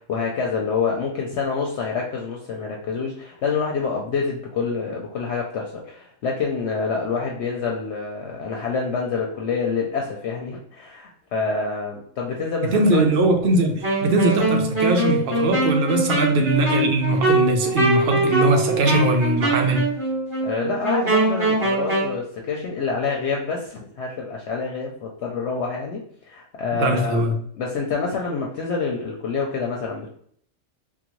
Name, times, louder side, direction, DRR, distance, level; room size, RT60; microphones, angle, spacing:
voice 1, 0.0-13.0 20.4-27.2 27.6-30.1, left 5 dB, 65° left, 0.8 m, -27 dB
voice 2, 12.7-19.9 26.8-27.4, right 2 dB, 60° right, 0.8 m, -20 dB
Wind instrument woodwind instrument, 13.8-22.1, right 2 dB, 25° right, 1.6 m, -22 dB
3.7 x 2.1 x 3.0 m
omnidirectional pair, 1.3 m